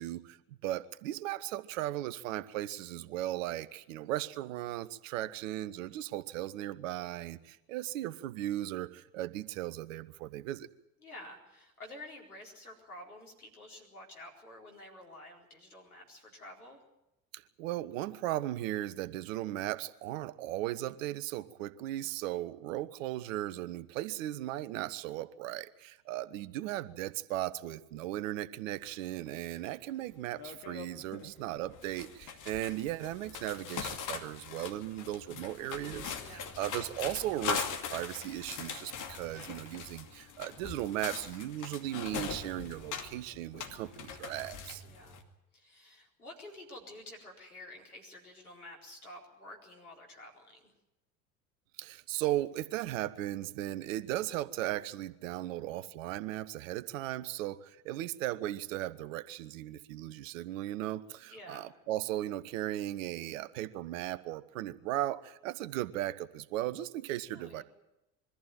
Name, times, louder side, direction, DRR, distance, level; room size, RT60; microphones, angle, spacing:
voice 1, 0.0-10.7 17.3-44.8 51.8-67.6, right 14 dB, 60° right, 16 dB, 1.1 m, -37 dB
voice 2, 5.6-6.0 11.0-16.8 35.4-35.9 36.2-36.6 43.6-44.0 44.8-45.2 45.5-50.7 61.2-61.7 67.3-67.6, left 1 dB, 85° left, 1 dB, 4.4 m, -50 dB
sound 1, 29.3-29.4 29.7-29.9 30.4-31.3 31.6-45.2, left 7 dB, 45° left, 2.6 m, -41 dB
23.0 x 14.0 x 9.1 m, 0.92 s
figure-of-eight pair, 65°, 43 cm